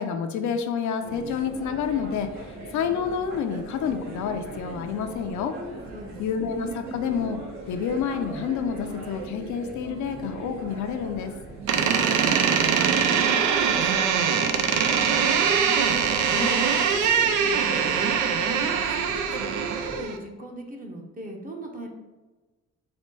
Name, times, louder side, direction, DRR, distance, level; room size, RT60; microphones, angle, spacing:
voice 1, 0.0-2.3 2.7-5.6 6.2-7.4 7.7-11.3 16.3-16.5, left 7 dB, 70° left, 7 dB, 0.5 m, -28 dB
sound 1, 1.0-20.0, right 2 dB, 65° right, 1.3 m, -40 dB
voice 2, 5.9-6.7 13.3-15.8 16.3-18.1 18.5-21.9, right 1 dB, 30° right, 2 dB, 0.8 m, -39 dB
Door, 11.7-20.2, right 7 dB, 85° right, 0.5 m, -23 dB
4.2 x 2.1 x 4.6 m, 1.2 s
cardioid pair, 90°, 30 cm